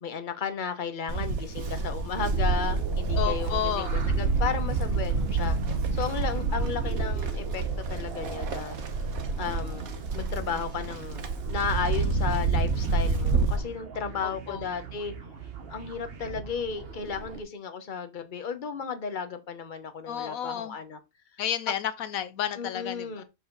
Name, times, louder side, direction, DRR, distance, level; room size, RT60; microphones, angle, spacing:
voice 1, 0.0-5.6 5.9-8.8 9.4-9.9 10.1-11.2 11.5-15.1 15.7-21.0 22.6-23.2, left 6 dB, 40° left, 1.1 m, -34 dB
Livestock farm animals working animals, 1.1-13.6, right 4 dB, 85° right, 1.6 m, -28 dB
sound 1, 2.2-17.4, right 5 dB, 45° right, 1.2 m, -41 dB
voice 2, 3.2-4.0 14.2-14.6 20.1-20.8 21.4-23.2, left 10 dB, 80° left, 1.1 m, -31 dB
6.7 x 5.6 x 4.0 m
omnidirectional pair, 1.4 m